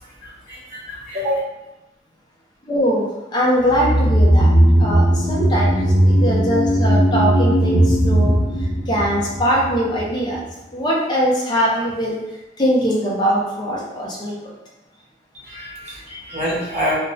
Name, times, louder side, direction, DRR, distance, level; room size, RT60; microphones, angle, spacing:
voice 1, 0.2-1.4 15.3-17.0, equal, 40° right, -8 dB, 1.1 m, -26 dB
voice 2, 2.7-4.5 4.8-8.4 8.9-10.4 10.7-12.2 12.6-14.5, equal, 25° left, -4 dB, 0.6 m, -21 dB
sound 1, 3.7-10.1 10.3-10.4, right 1 dB, 80° left, 0.8 m, -17 dB
2.8 x 2.1 x 2.6 m, 0.97 s
head